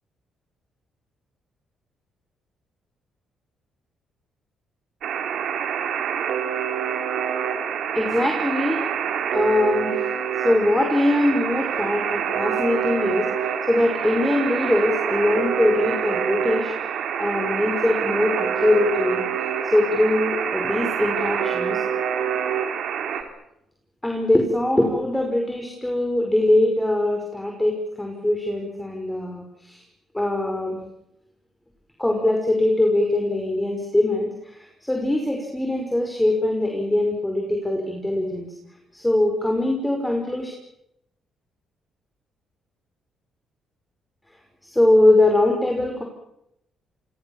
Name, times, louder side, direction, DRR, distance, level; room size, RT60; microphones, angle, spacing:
Alarm, 5.0-23.2, right 8 dB, 75° right, 3.4 m, -26 dB
voice 1, 7.9-8.8 9.3-9.9 10.4-13.3 13.7-16.7 17.2-19.2 19.6-21.8 24.0-29.8 30.1-30.8 32.0-38.5 38.9-40.5 44.6-46.0, left 1 dB, 10° left, 2 dB, 5.5 m, -22 dB
29.0 x 24.0 x 7.3 m, 0.83 s
cardioid pair, 90°, 0 cm